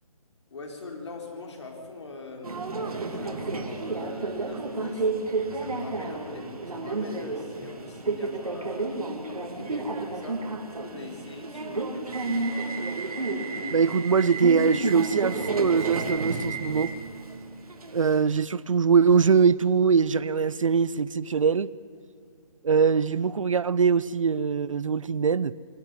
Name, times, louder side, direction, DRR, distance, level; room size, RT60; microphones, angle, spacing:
voice 1, 0.5-2.7 3.0-5.1 5.5-8.9 9.2-12.7, left 3 dB, 50° left, 3.9 m, -42 dB
Subway metro underground, 2.4-18.4, right 3 dB, 75° right, 2.8 m, -31 dB
voice 2, 13.7-16.9 17.9-21.7 22.6-25.5, right 6 dB, 60° right, 0.5 m, -22 dB
25.0 x 11.5 x 9.3 m
hypercardioid pair, 175°, 19 cm